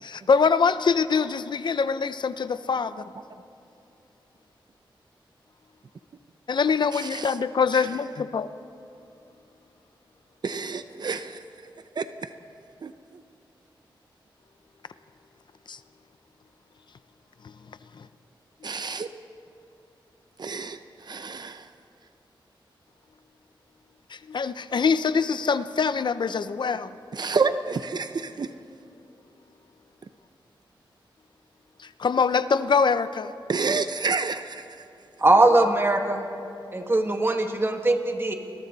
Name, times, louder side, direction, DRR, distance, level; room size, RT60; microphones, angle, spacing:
voice 1, 0.0-3.0 6.5-8.5 15.7-15.8 17.4-17.5 17.9-18.1 24.1-26.9 31.8-33.3, left 5 dB, 60° left, 13 dB, 0.7 m, -24 dB
voice 2, 6.9-7.3 7.7-7.8 10.4-11.4 12.0-12.3 12.8-12.9 18.6-19.1 20.4-21.7 27.1-28.5 33.5-34.6, right 4 dB, 55° right, 10 dB, 0.7 m, -29 dB
voice 3, 35.2-36.3 36.7-38.3, right 2 dB, 30° right, 4 dB, 2.0 m, -21 dB
29.5 x 21.5 x 4.1 m, 2.7 s
wide cardioid pair, 85°, 9 cm